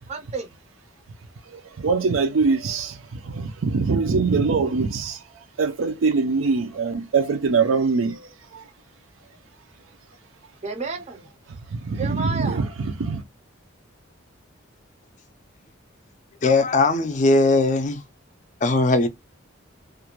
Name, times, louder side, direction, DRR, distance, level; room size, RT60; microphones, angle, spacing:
voice 1, 0.1-0.5 10.6-11.3 12.0-12.6, right 4 dB, 35° right, 0.5 m, -31 dB
voice 2, 1.5-8.7 11.5-13.2, right 4 dB, 80° right, 0.5 m, -23 dB
voice 3, 16.4-18.0 18.6-19.1, left 2 dB, 35° left, 0.4 m, -19 dB
2.4 x 2.2 x 2.9 m
head